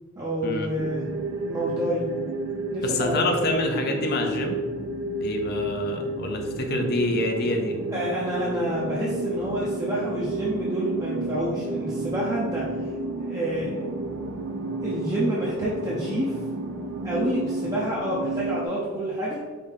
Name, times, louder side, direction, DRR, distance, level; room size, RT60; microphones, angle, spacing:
voice 1, 0.2-1.0 1.5-2.1 2.7-3.6 7.9-12.7 13.2-13.9 14.8-16.4 17.0-19.4, right 1 dB, 15° right, -7 dB, 0.6 m, -28 dB
sound 1, 0.8-18.7, right 2 dB, 90° right, 0.5 m, -31 dB
voice 2, 2.8-4.6 5.2-7.8, left 2 dB, 50° left, 3 dB, 0.6 m, -27 dB
4.9 x 2.7 x 3.6 m, 1.4 s
head